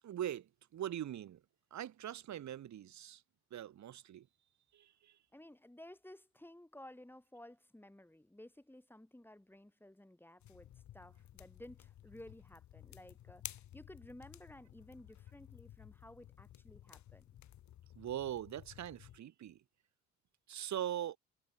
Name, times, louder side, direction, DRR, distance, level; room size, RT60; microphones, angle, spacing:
voice 1, 0.0-1.4 1.7-3.2 3.5-4.3 4.7-5.2 18.0-19.6 20.5-21.2, right 11 dB, 65° right, 2.5 m, -42 dB
voice 2, 5.3-17.3, left 1 dB, 5° left, 7.0 m, -55 dB
sound 1, 10.4-19.2, left 12 dB, 65° left, 1.6 m, -54 dB
cardioid pair, 90°, 30 cm